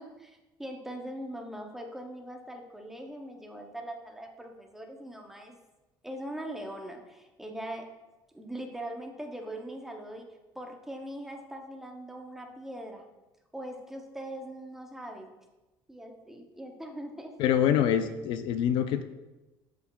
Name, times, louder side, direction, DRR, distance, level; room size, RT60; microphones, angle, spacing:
voice 1, 0.0-5.6 6.0-7.9 8.3-13.1 13.5-15.3 15.9-17.3, right 1 dB, 5° right, 2 dB, 0.6 m, -41 dB
voice 2, 17.4-19.0, left 9 dB, 60° left, 10 dB, 0.4 m, -25 dB
12.5 x 4.6 x 2.3 m, 1.1 s
cardioid pair, 175°, 10 cm